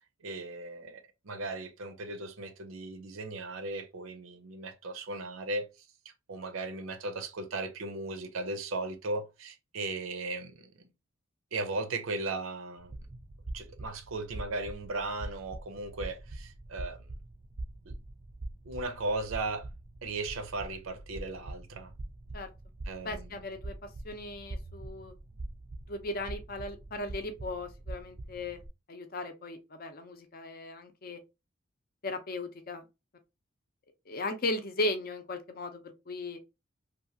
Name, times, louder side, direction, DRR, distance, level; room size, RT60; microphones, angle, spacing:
voice 1, 0.2-5.7 6.0-10.8 11.5-12.9 13.5-17.0 17.9-18.0 18.6-19.7 20.0-21.9 22.8-23.3, right 2 dB, 80° right, 0.6 m, -37 dB
sound 1, 12.8-28.7, right 2 dB, 25° right, 0.3 m, -44 dB
voice 2, 23.0-23.7 24.0-25.1 25.9-28.6 28.9-31.2 32.0-32.8 34.1-36.4, left 2 dB, 45° left, 0.5 m, -37 dB
2.8 x 2.3 x 2.7 m
head